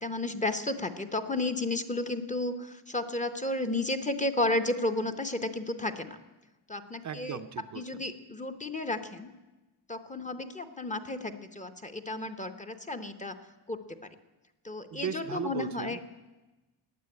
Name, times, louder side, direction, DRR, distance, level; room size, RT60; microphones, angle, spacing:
voice 1, 0.0-6.2 6.7-7.4 7.7-9.3 9.9-13.4 13.7-14.1 14.6-16.0, left 2 dB, 15° left, 7 dB, 0.7 m, -32 dB
voice 2, 7.0-8.0 14.9-16.0, right 8 dB, 40° right, 8 dB, 0.5 m, -37 dB
15.5 x 9.9 x 9.5 m, 1.1 s
wide cardioid pair, 175°, 46 cm